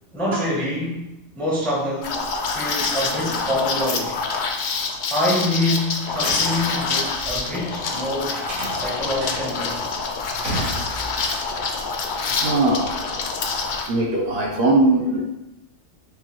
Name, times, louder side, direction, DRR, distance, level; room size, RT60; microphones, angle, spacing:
voice 1, 0.1-1.1 1.3-4.2 5.1-8.4 8.7-9.8 15.1-15.2, left 1 dB, ahead, -4 dB, 0.6 m, -26 dB
Liquid, 2.0-13.9, left 4 dB, 65° left, 0.5 m, -26 dB
sound 1, 6.1-8.0 8.3-11.4, right 1 dB, 80° right, 1.5 m, -32 dB
voice 2, 12.2-13.0 13.9-15.2, right 2 dB, 65° right, -1 dB, 0.8 m, -20 dB
5.0 x 2.3 x 2.9 m, 0.92 s
omnidirectional pair, 1.3 m